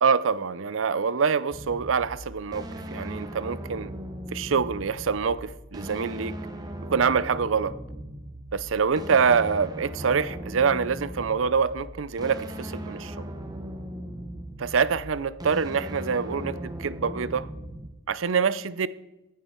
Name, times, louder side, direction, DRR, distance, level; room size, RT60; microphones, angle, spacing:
voice 1, 0.0-2.7 2.9-3.9 4.3-6.4 6.8-7.8 8.5-13.1 14.6-17.5 18.1-18.9, right 5 dB, 80° right, 0.6 m, -25 dB
sound 1, 1.5-17.9, right 1 dB, 20° right, 1.0 m, -38 dB
14.5 x 9.7 x 4.5 m
head